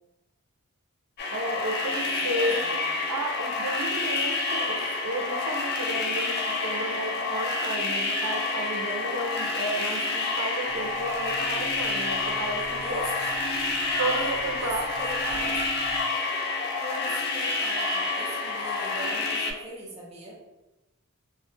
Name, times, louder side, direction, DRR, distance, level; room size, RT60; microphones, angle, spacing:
sound 1, 1.2-19.5, left 3 dB, 45° left, 0.3 m, -28 dB
voice 1, 1.3-2.7 3.1-13.0 14.0-15.4, right 1 dB, 80° right, 1 dB, 0.5 m, -33 dB
voice 2, 2.0-2.9 12.8-13.4 14.1-15.8 16.6-20.4, equal, 25° right, -4 dB, 0.4 m, -40 dB
sound 2, 10.7-16.0, right 1 dB, 15° left, 0.8 m, -39 dB
2.3 x 2.0 x 2.6 m, 1.0 s
head